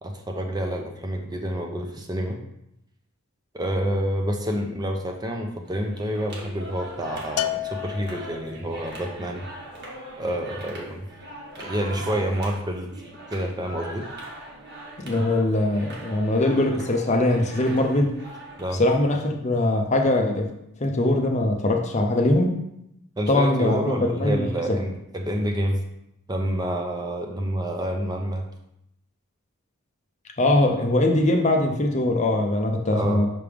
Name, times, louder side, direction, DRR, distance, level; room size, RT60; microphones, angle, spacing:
voice 1, 0.0-2.4 3.5-9.4 10.2-11.1 11.6-13.0 13.3-14.1 18.6-18.8 23.2-25.8 26.3-28.5 32.9-33.2, equal, 20° right, 3 dB, 0.6 m, -28 dB
sound 1, 5.7-18.6, right 1 dB, 50° right, 1.3 m, -41 dB
Bell, 7.4-8.7, left 13 dB, 90° left, 0.4 m, -30 dB
voice 2, 15.0-18.1 18.8-20.5 20.8-22.5 23.3-24.8 30.4-33.3, left 1 dB, 30° left, 3 dB, 0.6 m, -22 dB
5.8 x 3.4 x 5.0 m, 0.81 s
head